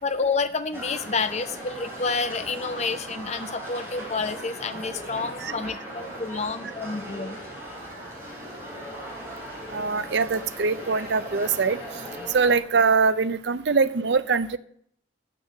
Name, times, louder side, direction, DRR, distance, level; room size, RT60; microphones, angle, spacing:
voice 1, 0.0-7.3, left 4 dB, 35° left, 10 dB, 0.7 m, -29 dB
sound 1, 0.7-12.6, equal, 15° right, 3.8 m, -38 dB
voice 2, 9.7-11.8 12.3-14.6, right 4 dB, 65° right, 14 dB, 0.6 m, -23 dB
10.0 x 6.1 x 6.5 m, 0.64 s
head